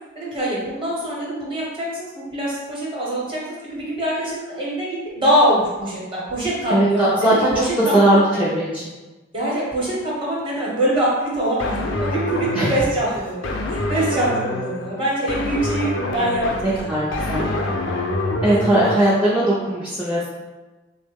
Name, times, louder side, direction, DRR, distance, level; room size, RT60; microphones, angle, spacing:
voice 1, 0.1-8.4 9.3-13.5 13.9-17.7, right 1 dB, 25° right, -6 dB, 0.9 m, -24 dB
voice 2, 6.7-8.8 12.6-12.7 16.9-17.5 18.4-20.3, right 1 dB, 5° right, -9 dB, 0.4 m, -19 dB
sound 1, 11.6-18.9, left 1 dB, 70° left, 0.5 m, -26 dB
3.7 x 2.1 x 3.3 m, 1.2 s
head